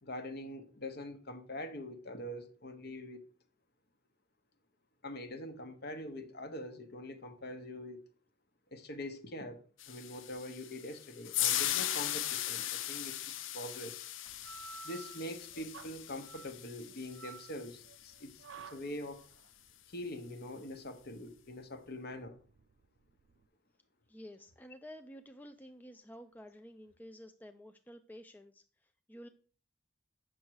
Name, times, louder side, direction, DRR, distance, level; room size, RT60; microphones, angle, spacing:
voice 1, 0.0-3.2 5.0-8.0 8.7-9.6 9.9-14.1 14.8-19.2 19.9-22.4, left 1 dB, 50° left, 1.0 m, -44 dB
sound 1, 9.8-18.1, left 12 dB, 75° left, 0.5 m, -38 dB
sound 2, 14.3-23.4, right 6 dB, 75° right, 0.5 m, -53 dB
voice 2, 24.1-29.3, equal, 10° left, 0.4 m, -51 dB
8.1 x 6.2 x 4.7 m
head